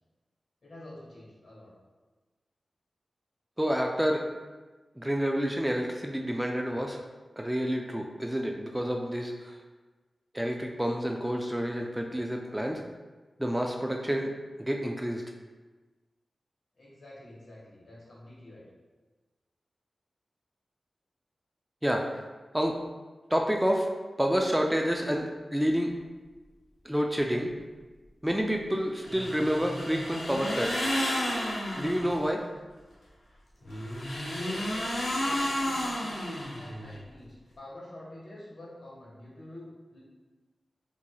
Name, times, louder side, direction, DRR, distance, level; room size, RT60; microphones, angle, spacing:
voice 1, 0.6-1.7 16.8-18.6 34.3-40.0, left 1 dB, 70° left, -7 dB, 1.4 m, -48 dB
voice 2, 3.6-4.2 5.0-7.0 7.4-9.6 10.3-12.8 13.4-14.3 14.6-15.2 21.8-22.2 22.5-22.8 23.3-23.9 24.2-25.9 26.9-27.5 28.2-30.9 31.8-32.4, equal, 10° right, 1 dB, 0.3 m, -29 dB
sound 1, 29.0-32.2 33.6-37.0, left 1 dB, 90° left, 1.0 m, -32 dB
4.0 x 2.9 x 2.2 m, 1.3 s
cardioid pair, 60°, 0 cm